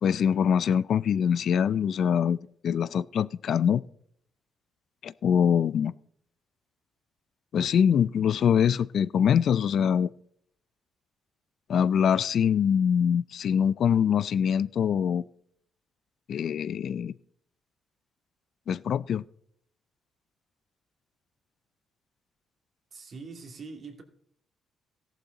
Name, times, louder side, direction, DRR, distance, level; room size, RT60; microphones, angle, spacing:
voice 1, 0.0-3.8 5.0-5.9 7.5-10.1 11.7-15.2 16.3-17.1 18.7-19.2, left 8 dB, 65° left, 0.4 m, -24 dB
voice 2, 22.9-24.0, right 4 dB, 50° right, 2.5 m, -43 dB
14.5 x 11.5 x 3.9 m
cardioid pair, 90°, 0 cm